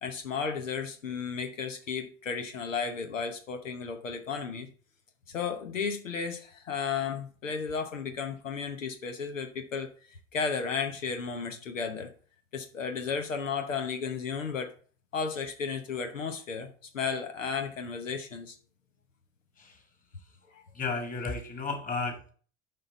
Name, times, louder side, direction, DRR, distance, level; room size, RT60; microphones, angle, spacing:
voice 1, 0.0-4.7 5.3-9.9 10.3-12.1 12.5-14.7 15.1-18.6 20.5-20.6, left 5 dB, 90° left, 6 dB, 0.9 m, -33 dB
voice 2, 20.7-22.3, left 3 dB, 20° left, 4 dB, 1.9 m, -33 dB
6.7 x 5.5 x 4.0 m, 0.41 s
hypercardioid pair, 80°, 37 cm